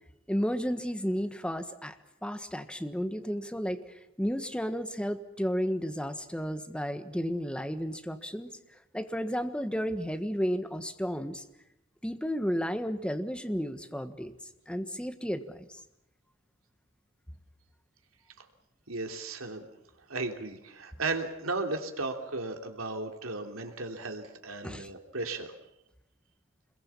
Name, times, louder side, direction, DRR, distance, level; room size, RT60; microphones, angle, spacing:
voice 1, 0.3-1.9 2.2-3.8 4.2-8.5 8.9-11.4 12.0-14.3 14.7-15.8 24.6-24.9, equal, 5° left, 8 dB, 1.4 m, -32 dB
voice 2, 18.9-19.7 20.1-25.5, right 3 dB, 85° right, 4 dB, 3.0 m, -35 dB
26.5 x 22.0 x 7.2 m, 0.85 s
head